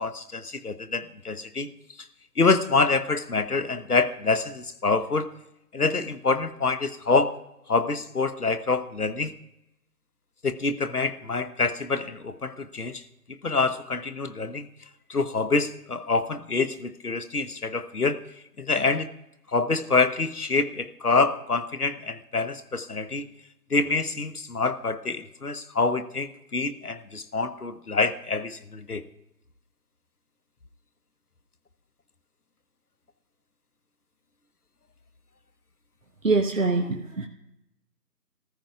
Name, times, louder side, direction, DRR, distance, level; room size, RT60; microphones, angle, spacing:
voice 1, 0.0-1.7 2.4-5.3 5.7-7.3 7.7-9.3 10.4-13.0 13.4-14.7 15.1-18.2 18.6-19.1 19.5-23.3 23.7-29.0, left 4 dB, 65° left, 12 dB, 1.1 m, -26 dB
voice 2, 36.2-37.3, right 3 dB, 55° right, 4 dB, 1.1 m, -24 dB
24.0 x 14.0 x 2.4 m, 0.87 s
figure-of-eight pair, 170°, 48 cm